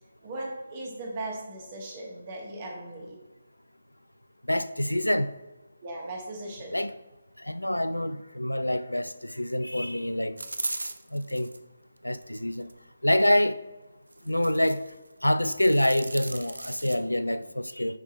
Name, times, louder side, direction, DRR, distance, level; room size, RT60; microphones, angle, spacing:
voice 1, 0.2-3.2 5.8-6.8 14.2-14.3, right 2 dB, 30° right, 1.8 m, -38 dB
voice 2, 4.5-5.3 6.7-6.9 7.4-10.4 11.1-11.5 12.0-12.7 13.0-13.6 14.3-14.8 15.2-18.0, left 1 dB, 85° left, 0.4 m, -26 dB
sound 1, 10.4-11.6 12.2-12.8 14.1-14.9 15.2-17.0, right 2 dB, 70° right, 0.5 m, -37 dB
9.4 x 3.7 x 4.2 m
figure-of-eight pair, 150°, 0 cm